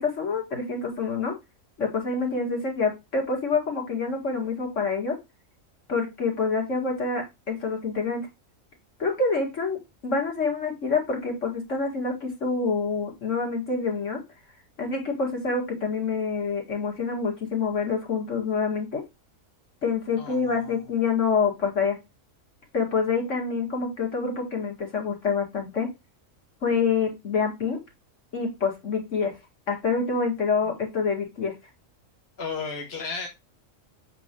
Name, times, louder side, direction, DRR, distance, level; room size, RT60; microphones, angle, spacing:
voice 1, 0.0-1.3 1.8-5.2 5.9-8.3 9.0-9.8 10.0-14.2 14.8-19.0 19.8-22.0 22.7-25.9 26.6-27.8 28.3-29.3 29.7-31.5, left 4 dB, 65° left, 2.4 m, -26 dB
voice 2, 20.2-20.8 30.6-30.7 32.4-33.3, left 4 dB, 50° left, 1.3 m, -34 dB
7.5 x 3.1 x 5.2 m
omnidirectional pair, 1.4 m